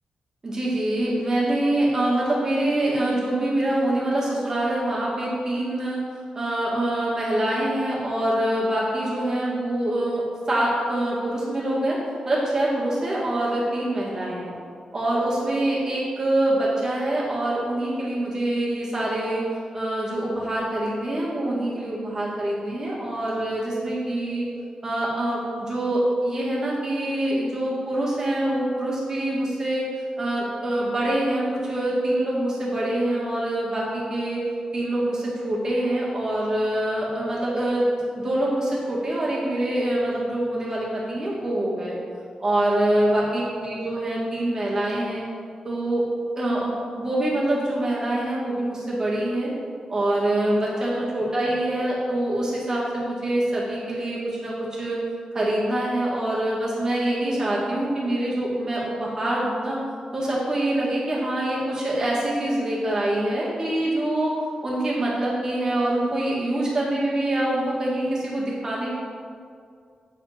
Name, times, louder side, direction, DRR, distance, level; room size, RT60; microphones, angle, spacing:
voice 1, 0.4-6.0 6.3-12.0 12.3-14.6 14.9-19.4 19.7-24.5 24.8-29.9 30.2-34.4 34.7-42.0 42.4-45.3 45.6-46.0 46.3-46.7 47.0-49.5 49.9-55.0 55.3-59.8 60.1-64.3 64.6-68.9, right 1 dB, 25° right, -6 dB, 2.0 m, -25 dB
8.6 x 4.2 x 5.7 m, 2.2 s
wide cardioid pair, 170°, 2 cm